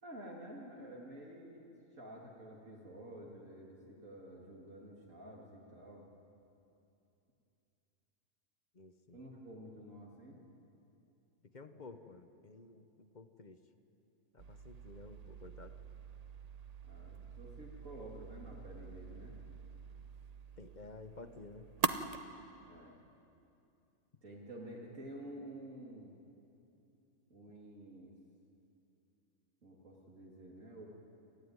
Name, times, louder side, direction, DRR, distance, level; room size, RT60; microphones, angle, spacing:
voice 1, 0.0-1.6 2.0-6.1 9.1-10.4 16.8-19.4 22.6-23.0 24.2-26.1 27.3-28.1 29.6-30.9, right 1 dB, 65° right, -3 dB, 2.9 m, -50 dB
voice 2, 8.7-9.2 11.4-13.6 14.3-15.7 20.6-21.7, left 3 dB, 35° left, 9 dB, 1.0 m, -53 dB
sound 1, 14.4-22.2, right 5 dB, 40° right, 0.6 m, -43 dB
28.5 x 14.0 x 9.5 m, 2.8 s
omnidirectional pair, 1.5 m